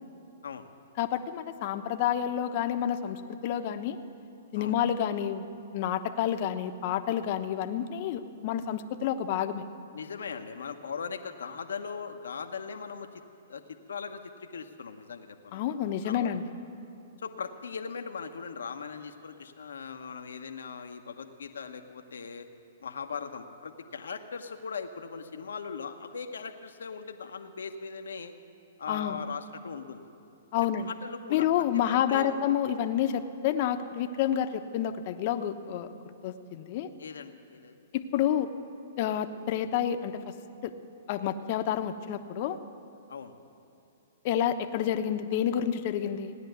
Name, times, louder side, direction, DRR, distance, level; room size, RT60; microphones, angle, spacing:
voice 1, 1.0-4.0 4.5-5.5 5.7-9.6 15.5-16.4 28.9-29.2 30.5-30.9 31.3-35.9 36.2-36.9 37.9-38.5 39.0-40.2 40.6-40.7 41.1-42.6 44.2-46.4, left 10 dB, 50° left, 8 dB, 0.9 m, -29 dB
voice 2, 9.9-13.1 13.5-13.6 13.9-15.6 16.0-16.4 17.2-22.5 22.8-28.3 28.8-30.1 30.6-32.3 37.0-37.8 43.1-43.3, left 5 dB, 85° left, 6 dB, 0.9 m, -39 dB
16.5 x 10.5 x 8.0 m, 2.9 s
hypercardioid pair, 130°, 0 cm